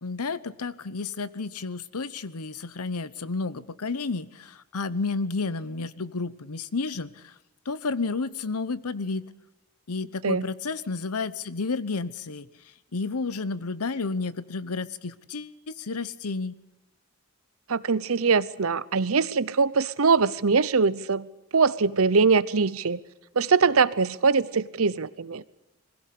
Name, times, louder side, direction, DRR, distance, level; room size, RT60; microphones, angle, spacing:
voice 1, 0.0-7.3 7.7-9.2 9.9-12.5 12.9-16.6, left 4 dB, 90° left, 0.9 m, -31 dB
voice 2, 17.7-21.3 21.5-23.0 23.4-25.4, right 4 dB, 70° right, 0.8 m, -22 dB
22.0 x 16.0 x 8.5 m
head